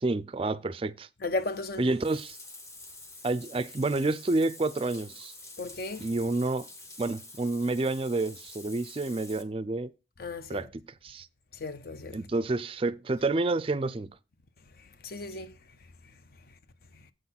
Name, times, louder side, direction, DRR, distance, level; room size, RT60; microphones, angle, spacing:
voice 1, 0.0-1.1 1.8-2.4 3.2-5.3 6.0-6.7 7.0-9.9 10.5-11.3 12.1-14.1, right 2 dB, 30° right, 0.4 m, -29 dB
voice 2, 1.2-1.9 5.6-6.1 10.2-10.7 11.5-12.2 15.0-15.6, left 3 dB, 50° left, 0.6 m, -35 dB
Bathtub (filling or washing), 1.4-9.4, left 2 dB, 15° left, 0.7 m, -48 dB
7.8 x 4.0 x 5.8 m
head